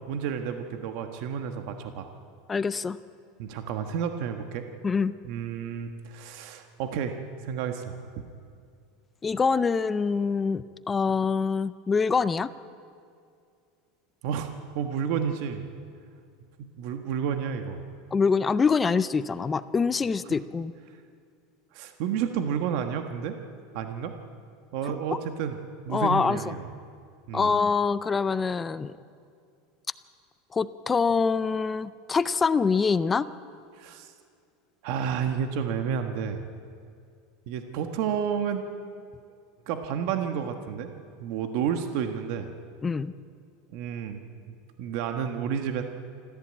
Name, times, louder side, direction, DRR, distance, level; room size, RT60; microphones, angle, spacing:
voice 1, 0.1-2.1 3.4-4.7 5.2-8.2 14.2-15.6 16.6-17.8 20.9-21.0 21.7-23.4 23.7-24.2 24.7-25.6 25.8-26.7 27.3-27.5 33.8-34.1 34.8-36.4 37.5-38.6 39.7-40.9 41.2-42.5 43.7-44.2 44.5-45.8, right 7 dB, 50° right, 6 dB, 1.4 m, -31 dB
voice 2, 2.5-3.0 4.8-5.1 9.2-12.5 18.1-20.7 25.9-26.4 27.3-28.9 30.5-33.3 42.8-43.1, left 5 dB, 15° left, 14 dB, 0.4 m, -25 dB
26.0 x 14.5 x 8.9 m, 2.3 s
supercardioid pair, 170°, 0 cm